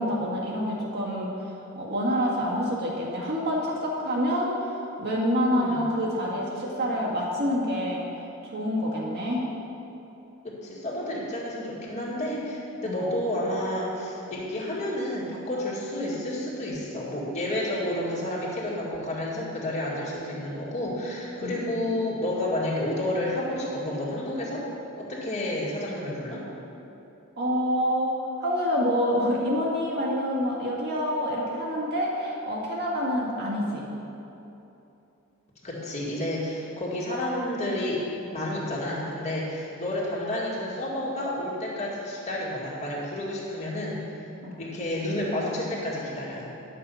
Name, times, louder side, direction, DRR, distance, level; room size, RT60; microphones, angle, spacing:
voice 1, 0.0-9.5 12.8-13.2 21.4-21.7 27.4-33.9 44.4-44.6, equal, 50° right, -3 dB, 1.9 m, -27 dB
voice 2, 10.4-24.6 25.0-26.4 35.6-38.0 38.3-44.2 44.6-46.4, left 1 dB, 35° left, -6 dB, 2.2 m, -30 dB
11.0 x 6.9 x 5.7 m, 2.9 s
head